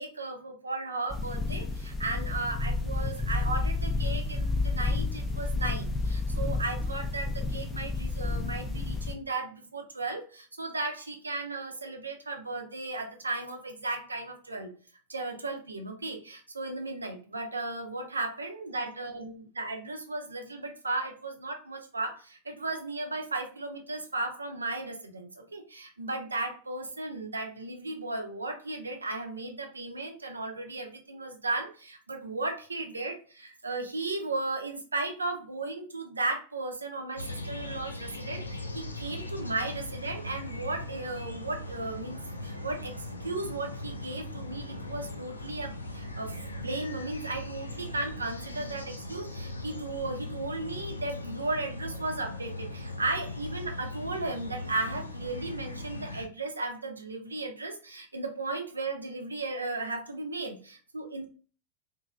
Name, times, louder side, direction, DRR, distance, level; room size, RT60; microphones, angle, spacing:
voice 1, 0.0-14.7 15.1-61.3, right 2 dB, 80° right, 4 dB, 0.5 m, -35 dB
sound 1, 1.1-9.1, left 3 dB, 15° left, 0.5 m, -30 dB
sound 2, 37.2-56.3, left 1 dB, 80° left, 0.4 m, -39 dB
3.0 x 2.6 x 2.4 m, 0.39 s
figure-of-eight pair, 90°, 0 cm